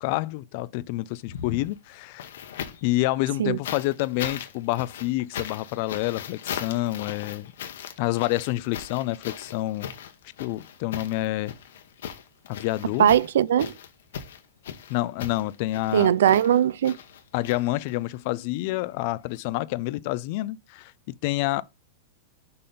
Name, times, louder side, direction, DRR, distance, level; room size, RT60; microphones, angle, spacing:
voice 1, 0.0-2.3 2.8-7.5 8.0-9.9 10.4-11.5 12.5-13.1 14.9-16.1 17.3-21.6, left 17 dB, 40° left, 0.3 m, -28 dB
sound 1, 1.2-2.9 3.6-18.2 19.3-19.4, left 9 dB, 70° left, 1.0 m, -38 dB
voice 2, 13.0-13.7 15.9-17.0, right 10 dB, 80° right, 0.4 m, -20 dB
5.4 x 4.2 x 5.0 m
supercardioid pair, 175°, 0 cm